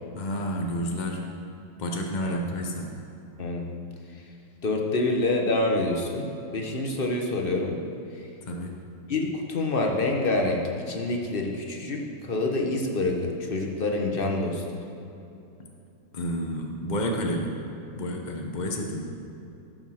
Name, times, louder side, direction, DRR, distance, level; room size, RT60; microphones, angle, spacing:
voice 1, 0.1-1.2 1.8-2.9 8.5-8.7 16.1-17.6 17.9-19.2, equal, 80° left, 1 dB, 0.4 m, -30 dB
voice 2, 4.6-7.8 9.1-14.8, left 2 dB, 40° left, 1 dB, 0.8 m, -27 dB
15.0 x 6.3 x 6.4 m, 2.9 s
omnidirectional pair, 2.4 m